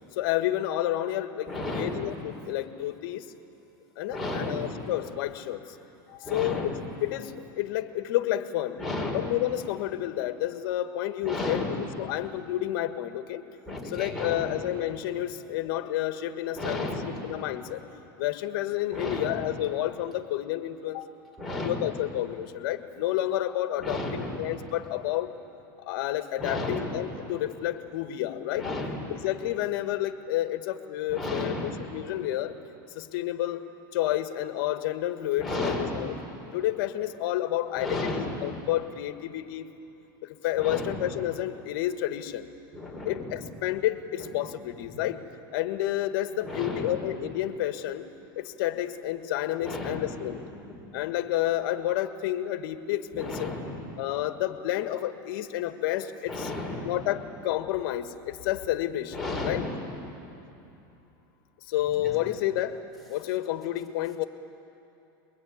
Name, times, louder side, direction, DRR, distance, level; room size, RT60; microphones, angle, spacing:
voice 1, 0.1-3.3 4.0-5.6 6.1-6.7 7.0-8.8 9.1-13.4 13.8-16.9 17.2-21.1 21.6-25.3 25.8-28.7 29.1-32.5 32.9-33.6 33.9-36.1 36.5-39.7 40.2-42.5 43.0-45.2 45.5-48.1 48.3-50.4 50.9-53.5 54.0-56.5 56.8-59.6 61.7-62.8 63.1-64.2, left 13 dB, 70° left, 9 dB, 1.5 m, -30 dB
voice 2, 1.5-2.1 4.1-4.9 6.2-7.0 8.8-9.4 11.2-11.8 13.7-14.6 15.1-15.2 16.6-17.4 18.9-19.5 21.4-21.9 23.8-24.5 26.4-27.3 28.6-29.2 31.1-31.8 35.4-36.0 37.8-38.5 40.6-41.1 42.7-43.5 44.2-44.3 44.9-45.0 46.4-47.0 49.6-50.8 53.1-53.9 56.3-57.1 59.1-60.1 62.0-62.1, left 2 dB, ahead, -4 dB, 5.7 m, -34 dB
23.0 x 22.5 x 9.5 m, 2.9 s
supercardioid pair, 130°, 12 cm